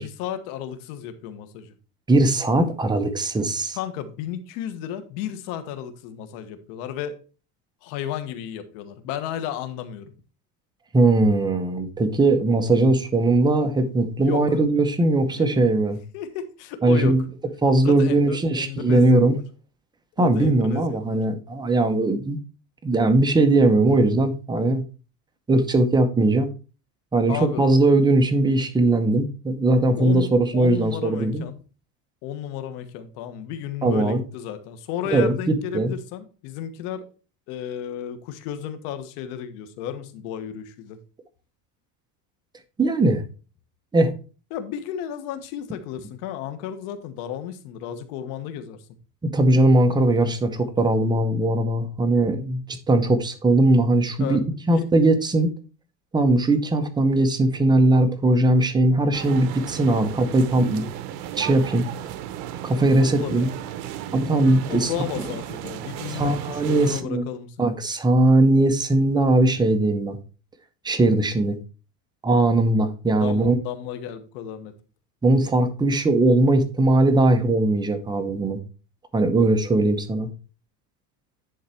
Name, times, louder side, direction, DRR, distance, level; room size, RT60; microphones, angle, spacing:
voice 1, 0.0-1.7 3.7-7.2 7.8-10.1 14.2-14.6 15.3-15.6 16.1-17.2 17.8-19.4 20.2-21.2 27.3-27.6 30.0-31.6 32.2-37.0 37.5-41.0 44.5-48.8 54.2-54.9 60.1-60.3 63.0-63.5 64.5-67.7 73.2-74.7, left 9 dB, 70° left, 1.4 m, -33 dB
voice 2, 2.1-3.8 10.9-16.0 16.8-17.2 17.6-19.4 20.2-22.4 22.8-24.8 25.5-26.5 27.1-31.4 33.8-34.2 35.1-35.9 42.8-43.2 43.9-44.1 49.2-52.6 52.9-54.4 54.7-55.5 56.1-60.8 61.4-61.9 62.6-63.5 64.1-64.9 66.1-67.2 67.6-70.2 70.8-71.6 72.2-73.6 75.2-78.6 79.1-80.3, right 2 dB, 10° right, 0.8 m, -20 dB
sound 1, 59.1-67.0, right 11 dB, 75° right, 1.0 m, -35 dB
10.5 x 4.0 x 4.4 m
cardioid pair, 140°, 48 cm